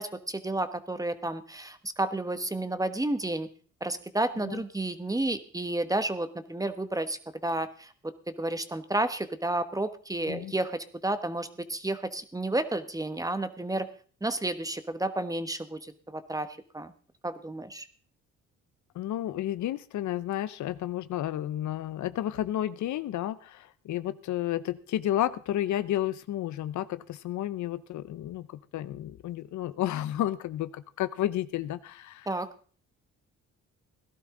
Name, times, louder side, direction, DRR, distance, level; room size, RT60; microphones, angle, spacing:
voice 1, 0.0-3.5 3.8-7.9 8.3-13.9 14.2-16.5 16.7-16.9 17.2-17.9 32.3-32.5, right 2 dB, 10° right, 11 dB, 1.1 m, -31 dB
voice 2, 18.9-32.3, left 12 dB, 70° left, 15 dB, 0.7 m, -32 dB
17.0 x 12.0 x 3.8 m, 0.42 s
cardioid pair, 90°, 30 cm